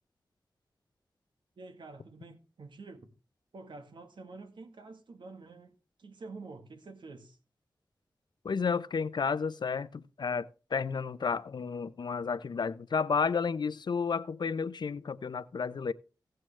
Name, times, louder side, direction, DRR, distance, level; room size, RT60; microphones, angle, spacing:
voice 1, 1.6-3.1 3.5-7.4, right 3 dB, 80° right, 1.6 m, -48 dB
voice 2, 8.4-15.9, left 5 dB, 70° left, 0.6 m, -32 dB
17.0 x 7.7 x 3.3 m
wide cardioid pair, 95°, 8 cm